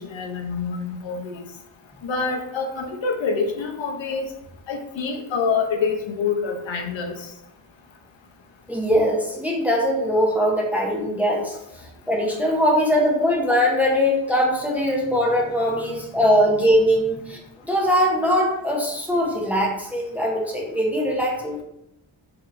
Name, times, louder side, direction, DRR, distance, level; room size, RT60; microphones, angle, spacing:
voice 1, 0.0-1.4 2.0-4.3 4.7-7.3, left 5 dB, 65° left, 3 dB, 0.7 m, -26 dB
voice 2, 8.7-17.4 17.6-21.6, equal, 5° right, -2 dB, 0.6 m, -21 dB
4.7 x 2.9 x 2.5 m, 0.80 s
wide cardioid pair, 130°, 49 cm